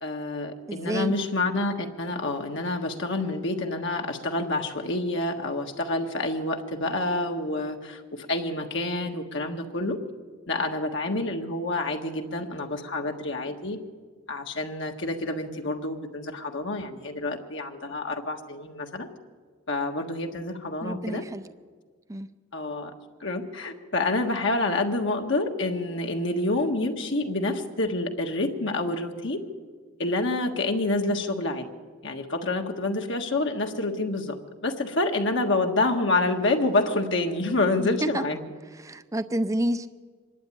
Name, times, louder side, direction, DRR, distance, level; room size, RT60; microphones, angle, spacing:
voice 1, 0.0-10.0 10.5-13.8 14.3-19.1 19.7-21.2 22.5-22.9 23.2-29.4 30.0-31.6 32.0-34.3 34.6-38.4, left 2 dB, 65° left, 3 dB, 1.5 m, -28 dB
voice 2, 0.7-1.1 20.8-21.4 22.1-22.3 37.8-38.2 38.7-39.9, right 1 dB, 15° right, 11 dB, 0.5 m, -29 dB
25.0 x 11.5 x 9.9 m, 1.5 s
head